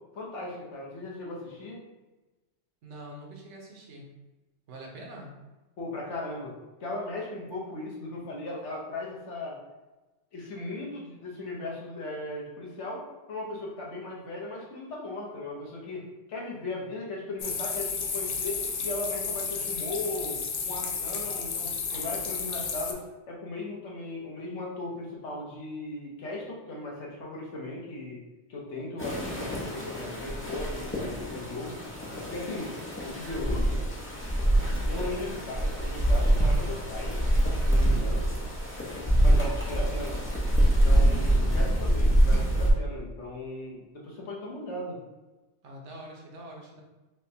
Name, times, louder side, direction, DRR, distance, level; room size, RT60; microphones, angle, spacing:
voice 1, 0.1-1.8 5.8-6.5 6.8-9.6 10.3-13.0 13.3-20.4 20.7-23.0 23.3-28.2 28.5-32.0 32.3-32.7 33.1-33.9 34.9-37.2 37.7-38.3 39.2-40.2 40.7-45.0, left 2 dB, 85° left, -2 dB, 1.2 m, -37 dB
voice 2, 2.8-4.1 4.7-5.3 45.6-46.8, right 1 dB, 85° right, -1 dB, 1.1 m, -44 dB
sound 1, 17.4-22.9, left 5 dB, 60° left, 0.6 m, -32 dB
sound 2, 29.0-42.7, right 1 dB, 15° left, 0.5 m, -25 dB
4.9 x 2.2 x 2.7 m, 1.1 s
omnidirectional pair, 1.2 m